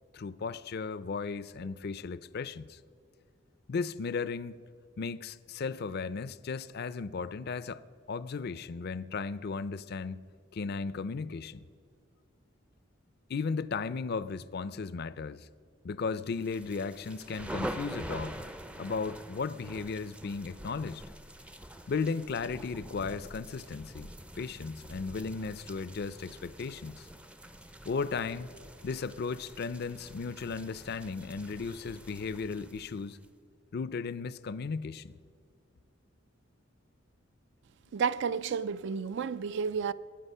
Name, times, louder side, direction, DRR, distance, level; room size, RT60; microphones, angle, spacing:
voice 1, 0.1-2.8 3.7-4.5 5.0-10.2 10.5-11.6 13.3-15.5 15.8-18.4 18.8-21.0 21.9-24.1 24.4-27.1 27.8-28.5 28.8-33.2 33.7-35.1, left 4 dB, 50° left, 0.4 m, -35 dB
sound 1, 16.3-33.3, equal, 5° right, 0.5 m, -45 dB
voice 2, 37.9-39.9, right 6 dB, 60° right, 0.4 m, -31 dB
22.5 x 8.8 x 5.5 m
head